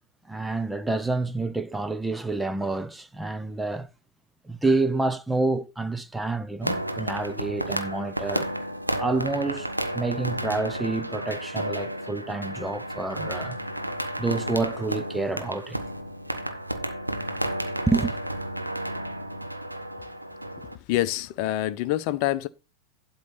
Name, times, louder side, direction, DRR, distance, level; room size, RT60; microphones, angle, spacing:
voice 1, 0.3-3.9 4.4-8.5 9.0-9.7 9.9-13.6 14.2-15.8 17.9-18.2, right 3 dB, 5° right, 0.6 m, -28 dB
sound 1, 6.6-20.8, right 1 dB, 85° right, 0.9 m, -32 dB
voice 2, 20.6-22.5, left 14 dB, 45° left, 0.7 m, -27 dB
11.5 x 4.0 x 5.7 m
figure-of-eight pair, 90°, 0 cm